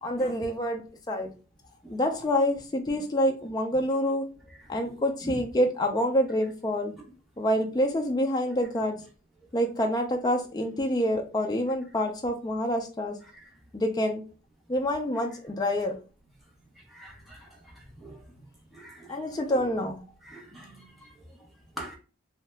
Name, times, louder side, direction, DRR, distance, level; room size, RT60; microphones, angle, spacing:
voice 1, 0.0-0.8 1.1-1.3 1.9-4.3 4.7-6.9 7.4-9.0 9.5-13.2 13.7-14.2 14.7-16.0 19.1-20.0, equal, 20° left, 0.3 m, -27 dB
voice 2, 16.9-17.4 18.0-18.1 18.7-19.1 19.5-19.6 20.3-20.7 21.8-22.0, right 1 dB, ahead, 0.7 m, -41 dB
2.7 x 2.2 x 3.2 m
head